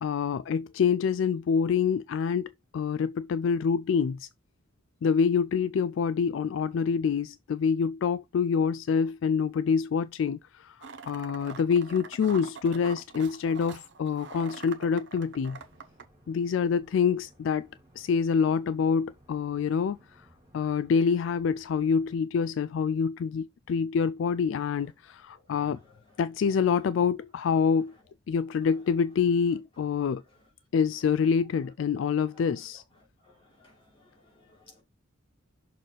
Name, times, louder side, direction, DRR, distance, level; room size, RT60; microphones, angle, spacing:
voice 1, 0.0-4.3 5.0-15.6 16.3-17.7 18.0-20.3 20.5-25.8 26.2-27.9 28.3-30.2 30.7-32.8, left 6 dB, 65° left, 0.3 m, -26 dB
sound 1, 10.8-16.0, right 5 dB, 60° right, 1.0 m, -45 dB
sound 2, 15.1-22.2, equal, 15° right, 3.1 m, -60 dB
voice 2, 33.2-34.8, left 3 dB, 30° left, 3.2 m, -59 dB
6.4 x 4.2 x 3.9 m
head